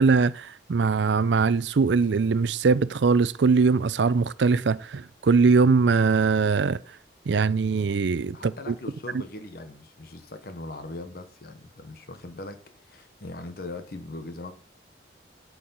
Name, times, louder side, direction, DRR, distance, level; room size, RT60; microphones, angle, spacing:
voice 1, 0.0-6.8 7.3-8.7, right 4 dB, 75° right, 0.5 m, -21 dB
voice 2, 8.3-14.5, left 2 dB, 55° left, 0.9 m, -40 dB
12.5 x 4.7 x 5.5 m
head